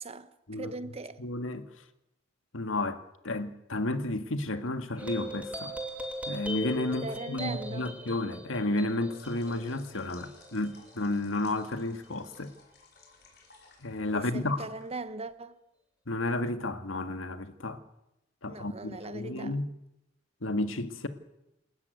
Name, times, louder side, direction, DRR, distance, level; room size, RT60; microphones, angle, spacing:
voice 1, 0.0-1.2 7.0-7.9 14.1-15.6 18.5-19.6, right 3 dB, 30° right, 1.2 m, -40 dB
voice 2, 1.2-1.7 2.5-5.7 6.3-12.5 13.8-14.6 16.1-17.8 18.4-19.7 20.4-21.1, left 2 dB, 90° left, 1.8 m, -32 dB
sound 1, 5.0-11.8, right 1 dB, 5° right, 2.7 m, -40 dB
sound 2, 9.1-15.4, left 4 dB, 55° left, 5.0 m, -58 dB
28.0 x 13.5 x 9.5 m
head